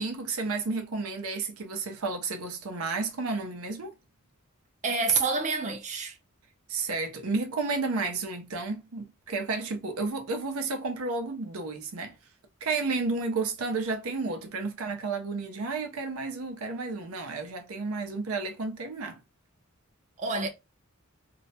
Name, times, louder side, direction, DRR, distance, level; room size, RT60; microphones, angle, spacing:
voice 1, 0.0-3.9 6.7-12.1 12.6-19.2, right 3 dB, 80° right, 0.6 m, -32 dB
voice 2, 4.8-6.2 20.2-20.5, right 4 dB, 35° right, 0.5 m, -27 dB
2.4 x 2.1 x 2.7 m
head